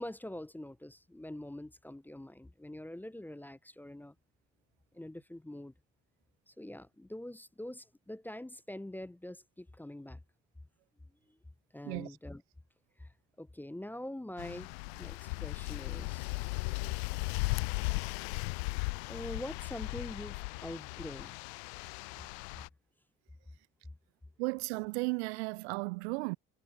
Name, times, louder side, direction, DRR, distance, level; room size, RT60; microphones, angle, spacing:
voice 1, 0.0-4.1 4.9-5.7 6.5-10.2 11.7-12.4 13.0-13.1 13.4-14.7 15.0-16.3 17.0-17.2 19.1-21.4, left 1 dB, 5° left, 0.6 m, -44 dB
voice 2, 11.8-12.2 24.4-26.4, right 28 dB, 65° right, 0.5 m, -35 dB
sound 1, 14.4-22.7, left 30 dB, 65° left, 0.7 m, -37 dB
figure-of-eight pair, 50°, 35 cm